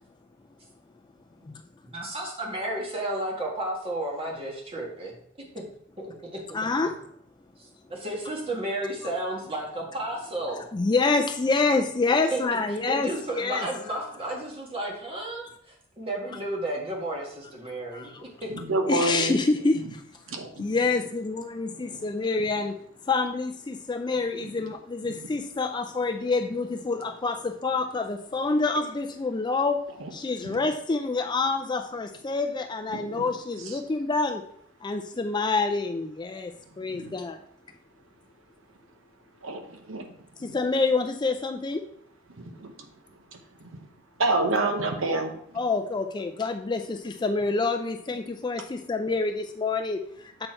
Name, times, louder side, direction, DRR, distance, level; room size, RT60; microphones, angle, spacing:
voice 1, 1.8-5.2 5.5-5.6 6.0-6.4 7.9-10.7 12.3-12.4 12.9-18.5, right 1 dB, 25° right, -1 dB, 1.7 m, -32 dB
voice 2, 6.5-6.9 10.7-13.1 13.4-13.7 17.9-18.2 18.9-20.0 20.6-22.7 23.1-29.8 30.1-34.4 34.8-37.4 40.4-41.8 45.6-50.5, left 3 dB, 20° left, 6 dB, 0.4 m, -27 dB
voice 3, 18.5-19.3 20.3-20.8 21.8-22.1 22.4-22.5 24.4-24.6 30.0-30.1 30.4-30.6 32.9-33.2 33.6-33.8 36.9-37.2 39.4-40.1 40.4-40.6 42.3-42.7 43.3-43.9 44.2-45.6, right 2 dB, 70° right, 4 dB, 1.0 m, -29 dB
7.7 x 4.4 x 4.4 m, 0.68 s
head